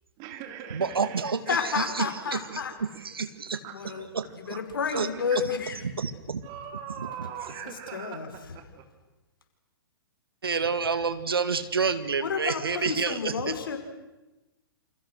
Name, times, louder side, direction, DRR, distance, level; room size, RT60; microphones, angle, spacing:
voice 1, 0.2-1.7 3.6-4.0 4.5-4.6 4.9-5.4 6.4-8.8, right 8 dB, 30° right, 5 dB, 3.7 m, -41 dB
voice 2, 0.7-1.4 1.8-2.4 2.8-3.6 4.1-4.6 4.9-5.1 5.8-6.4 7.0-7.1 10.4-13.5, right 5 dB, 75° right, 12 dB, 1.9 m, -29 dB
voice 3, 1.5-2.7 3.7-5.8 7.9-8.3 12.2-13.8, left 6 dB, 60° left, 6 dB, 5.1 m, -31 dB
29.0 x 27.5 x 6.5 m, 1.1 s
figure-of-eight pair, 115°, 13 cm